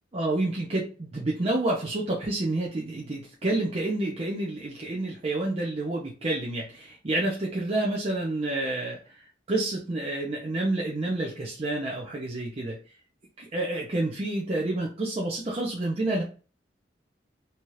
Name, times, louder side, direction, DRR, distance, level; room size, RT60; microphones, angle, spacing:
voice 1, 0.1-12.8 13.4-16.2, right 2 dB, 35° right, -3 dB, 0.6 m, -29 dB
2.8 x 2.3 x 3.1 m, 0.36 s
head